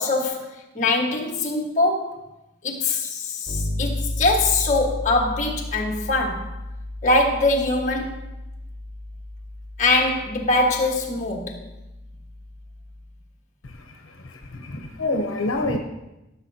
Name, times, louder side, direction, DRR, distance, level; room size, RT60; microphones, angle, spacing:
voice 1, 0.0-2.2 2.6-6.5 7.0-8.2 9.8-11.6, left 2 dB, 40° left, 1.4 m, -22 dB
Bass guitar, 3.5-13.1, left 1 dB, 20° right, 3.6 m, -33 dB
voice 2, 13.6-15.8, left 2 dB, 85° left, 0.8 m, -28 dB
15.0 x 6.8 x 2.8 m
head